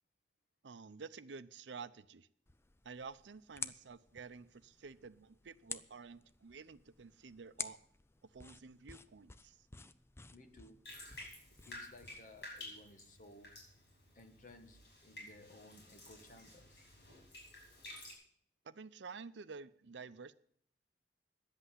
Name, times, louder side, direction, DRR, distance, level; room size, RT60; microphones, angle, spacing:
voice 1, 0.6-2.3 2.8-7.8 8.3-9.6 18.6-20.3, right 5 dB, 90° right, 14 dB, 0.6 m, -51 dB
sound 1, 2.5-12.5, left 4 dB, 15° left, 0.5 m, -51 dB
voice 2, 10.3-10.9 11.5-13.6 14.1-16.8, left 1 dB, 45° left, 6 dB, 1.5 m, -58 dB
Bathtub (filling or washing), 10.8-18.1, left 1 dB, 65° left, 6.7 m, -53 dB
11.0 x 8.2 x 9.7 m, 0.67 s
head